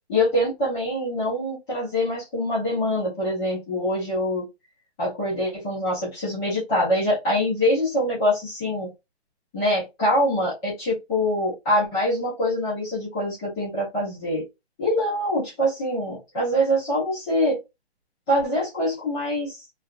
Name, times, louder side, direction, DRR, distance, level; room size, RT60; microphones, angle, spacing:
voice 1, 0.1-4.4 5.0-8.9 9.5-14.4 14.8-17.6 18.3-19.6, left 1 dB, 5° left, -11 dB, 0.4 m, -24 dB
3.2 x 2.3 x 2.5 m, 0.22 s
hypercardioid pair, 160°, 34 cm